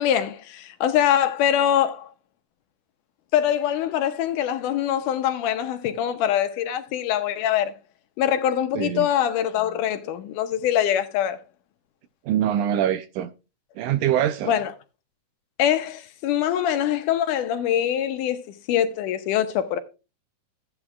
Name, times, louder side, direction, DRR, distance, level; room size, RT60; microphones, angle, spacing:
voice 1, 0.0-2.1 3.3-7.7 8.2-11.4 14.4-14.7 15.6-18.4 18.7-19.8, left 10 dB, 80° left, 2.2 m, -23 dB
voice 2, 8.8-9.1 12.3-13.3 13.8-14.5, right 10 dB, 80° right, 1.9 m, -23 dB
14.0 x 8.7 x 2.3 m
omnidirectional pair, 3.9 m